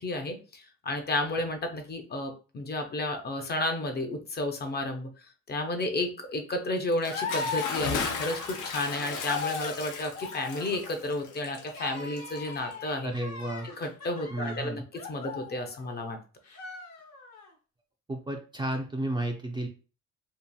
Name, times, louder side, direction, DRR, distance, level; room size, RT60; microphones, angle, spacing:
voice 1, 0.0-13.1 13.6-16.2, left 2 dB, 35° left, 5 dB, 0.5 m, -32 dB
Bathtub (filling or washing) / Splash splatter, 6.9-12.9, left 5 dB, 85° left, 0.6 m, -36 dB
sound 1, 7.0-16.1 16.5-17.5, left 4 dB, 60° left, 0.9 m, -39 dB
voice 2, 13.0-13.7 14.3-14.8 18.1-19.7, right 1 dB, 15° right, 2 dB, 0.4 m, -32 dB
2.8 x 2.4 x 2.2 m, 0.35 s
cardioid pair, 90°, 30 cm